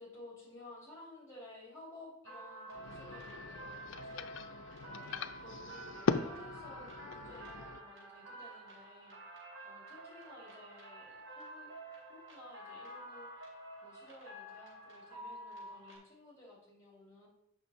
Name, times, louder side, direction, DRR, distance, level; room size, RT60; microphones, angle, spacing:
voice 1, 0.0-11.7 12.1-13.5 13.8-17.3, left 2 dB, 15° left, -2 dB, 2.9 m, -55 dB
sound 1, 2.2-16.0, right 1 dB, 60° right, 3.3 m, -49 dB
sound 2, 2.7-7.8, left 4 dB, 60° left, 0.4 m, -39 dB
7.9 x 5.9 x 4.2 m, 0.79 s
head